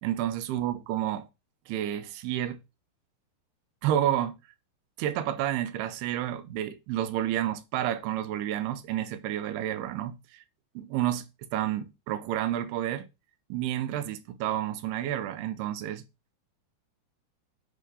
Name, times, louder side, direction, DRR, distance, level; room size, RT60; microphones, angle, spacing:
voice 1, 0.0-1.3 1.7-2.6 3.8-4.4 5.0-10.4 10.8-13.1 13.5-16.0, right 12 dB, 80° right, 2.7 m, -30 dB
7.8 x 3.7 x 4.9 m
omnidirectional pair, 4.9 m